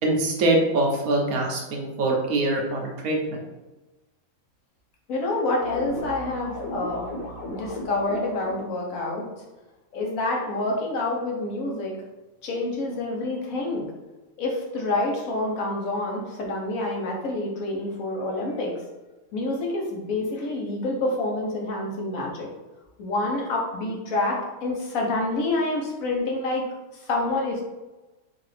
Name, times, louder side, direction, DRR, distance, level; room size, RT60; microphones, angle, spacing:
voice 1, 0.0-3.4, right 2 dB, 90° right, 0 dB, 1.3 m, -24 dB
voice 2, 5.1-7.1 7.5-9.3 9.9-11.9 12.4-13.9 14.4-18.7 19.3-22.5 23.0-26.6 26.9-27.6, left 2 dB, 70° left, -1 dB, 1.3 m, -27 dB
sound 1, 5.6-8.7, left 1 dB, 40° left, 1.1 m, -36 dB
4.7 x 2.6 x 3.3 m, 1.1 s
omnidirectional pair, 1.5 m